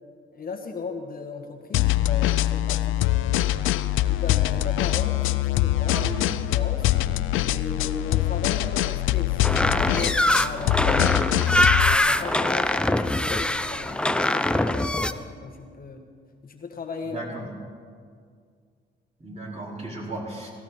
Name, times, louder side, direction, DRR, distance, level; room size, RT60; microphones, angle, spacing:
voice 1, 0.3-3.5 4.0-6.0 6.4-6.9 7.5-11.3 11.8-16.0 16.4-17.3, left 4 dB, 45° left, 3 dB, 1.5 m, -36 dB
sound 1, 1.7-11.9, left 15 dB, 85° left, 0.5 m, -23 dB
voice 2, 5.9-6.5 6.9-7.0 17.0-17.5 19.2-20.5, right 1 dB, 35° right, -4 dB, 4.7 m, -35 dB
sound 2, 9.4-15.1, left 1 dB, 5° left, 0.5 m, -23 dB
18.0 x 16.0 x 4.3 m, 2.1 s
cardioid pair, 90°, 20 cm